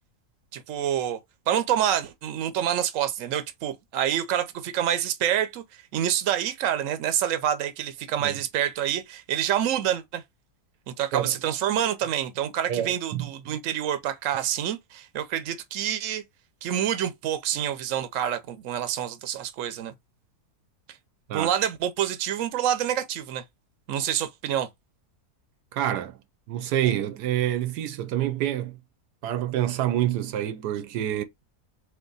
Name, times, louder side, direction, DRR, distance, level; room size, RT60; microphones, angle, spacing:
voice 1, 0.5-1.2 1.5-5.6 5.9-10.2 10.9-16.2 16.6-19.9 21.3-23.4 23.9-24.7, right 10 dB, 60° right, 1.1 m, -27 dB
voice 2, 12.7-13.5 21.3-21.5 25.7-26.2 26.5-28.8 29.2-31.2, right 11 dB, 85° right, 1.2 m, -27 dB
3.5 x 3.0 x 3.9 m
omnidirectional pair, 1.7 m